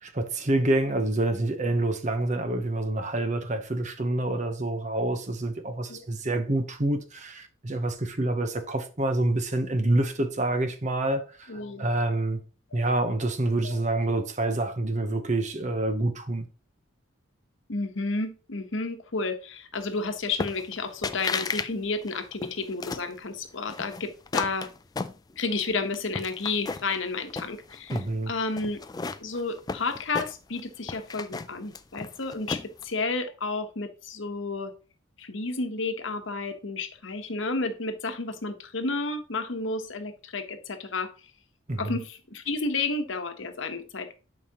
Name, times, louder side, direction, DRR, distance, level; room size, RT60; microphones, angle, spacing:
voice 1, 0.0-12.4 12.7-16.5 27.9-28.3 41.7-42.0, right 2 dB, 35° right, 0.8 m, -27 dB
voice 2, 11.5-11.9 12.7-12.8 13.6-13.8 17.7-24.7 25.4-28.0 28.3-28.8 29.2-34.7 35.2-41.1 41.8-44.1, left 3 dB, 70° left, 1.0 m, -31 dB
sound 1, 20.4-20.8 21.0-21.7 22.0-23.1 23.7-25.6 25.9-27.0 27.3-28.1 28.6-30.6 30.9-32.8, left 4 dB, 20° left, 0.3 m, -34 dB
11.0 x 4.9 x 2.9 m
head